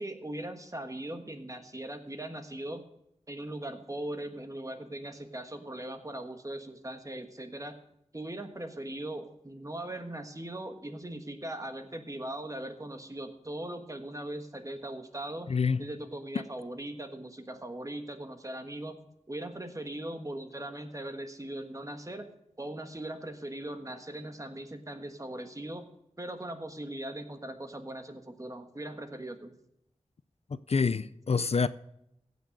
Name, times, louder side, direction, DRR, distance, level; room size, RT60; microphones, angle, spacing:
voice 1, 0.0-2.8 3.3-7.8 8.1-15.5 15.8-19.0 19.3-22.3 22.6-25.9 26.2-29.5, right 1 dB, 25° right, 1.4 m, -39 dB
voice 2, 15.5-15.8 30.5-31.7, left 5 dB, 55° left, 0.4 m, -27 dB
16.0 x 6.2 x 6.4 m
wide cardioid pair, 60°, 12 cm